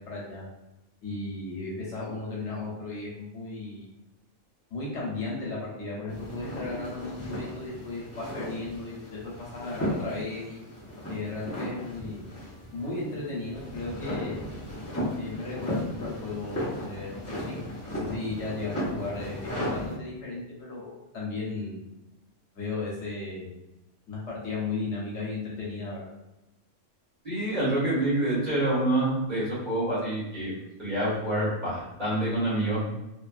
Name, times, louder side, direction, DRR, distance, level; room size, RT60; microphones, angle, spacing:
voice 1, 0.1-0.4 1.0-3.8 4.7-10.6 11.1-12.3 12.7-14.4 15.2-17.5 17.9-21.8 22.5-23.5 24.1-26.1, left 3 dB, 70° left, -5 dB, 1.1 m, -35 dB
sound 1, 6.1-20.0, equal, 15° left, 0.8 m, -35 dB
voice 2, 27.2-30.5 30.8-32.8, right 1 dB, 35° right, -9 dB, 1.3 m, -27 dB
2.6 x 2.5 x 2.3 m, 0.94 s
omnidirectional pair, 1.3 m